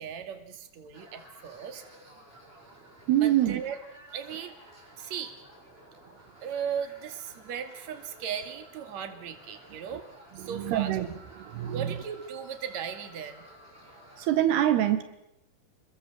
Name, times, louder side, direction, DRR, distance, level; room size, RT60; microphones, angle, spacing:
voice 1, 0.0-1.8 3.2-3.8 4.1-4.6 5.0-5.4 6.4-10.1 10.3-11.0 11.7-13.5, right 7 dB, 50° right, 7 dB, 3.3 m, -37 dB
sound 1, 0.9-14.3, right 1 dB, 15° right, 5.8 m, -53 dB
voice 2, 3.1-3.6 10.5-11.1 11.4-11.9 14.2-15.0, right 12 dB, 80° right, 10 dB, 3.5 m, -25 dB
29.5 x 21.5 x 7.7 m, 0.84 s
omnidirectional pair, 4.6 m